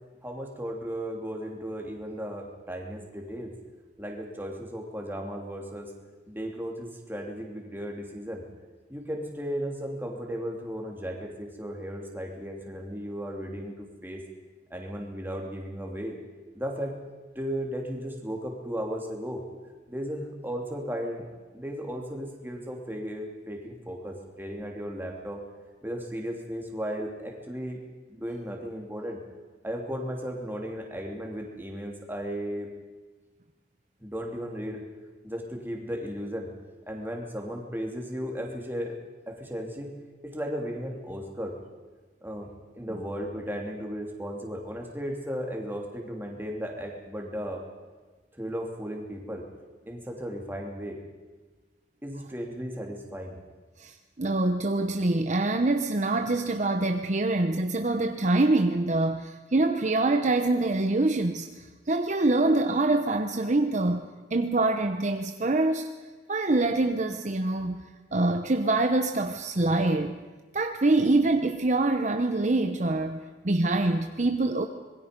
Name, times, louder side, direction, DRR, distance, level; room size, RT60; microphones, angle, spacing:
voice 1, 0.2-3.6 4.0-5.9 6.3-8.4 8.9-14.2 14.7-16.1 16.5-17.0 17.3-19.4 19.9-21.3 21.5-25.4 25.8-27.8 28.1-29.2 29.6-32.7 34.0-34.9 35.2-36.5 36.9-39.0 39.3-39.9 40.2-41.6 42.2-47.6 48.3-49.4 49.9-51.0 52.0-53.4, equal, 10° right, 1 dB, 3.0 m, -35 dB
voice 2, 53.8-65.9 66.3-67.8 68.1-70.1 70.5-74.7, right 2 dB, 45° right, 6 dB, 0.9 m, -25 dB
26.0 x 21.5 x 5.3 m, 1.3 s
head